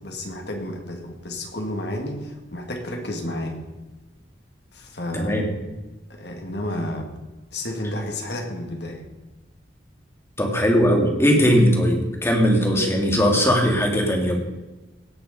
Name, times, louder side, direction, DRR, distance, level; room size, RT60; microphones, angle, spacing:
voice 1, 0.0-3.6 4.7-5.5 6.1-7.1 7.5-9.0, left 1 dB, 60° left, 3 dB, 2.2 m, -31 dB
voice 2, 5.1-5.4 10.4-14.4, equal, 15° left, 1 dB, 2.1 m, -19 dB
17.5 x 6.6 x 5.3 m, 1.1 s
head